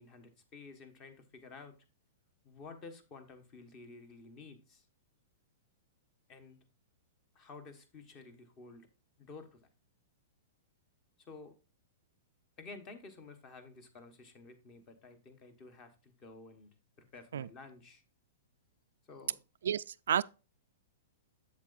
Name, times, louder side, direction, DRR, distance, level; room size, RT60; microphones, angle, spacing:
voice 1, 0.0-1.8 2.4-4.9 6.3-6.6 7.3-8.9 9.2-9.7 11.3-11.5 12.6-16.7 17.0-18.0 19.1-19.4, left 3 dB, 25° left, 1.2 m, -52 dB
voice 2, 19.6-20.2, right 9 dB, 85° right, 0.3 m, -31 dB
7.7 x 7.2 x 2.5 m
hypercardioid pair, 160°, 0 cm